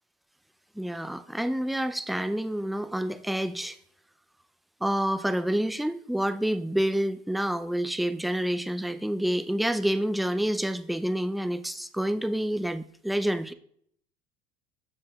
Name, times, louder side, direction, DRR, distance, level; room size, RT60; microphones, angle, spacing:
voice 1, 0.8-3.8 4.8-13.5, right 1 dB, ahead, 11 dB, 0.4 m, -28 dB
13.5 x 4.8 x 2.3 m, 0.65 s
supercardioid pair, 110°, 17 cm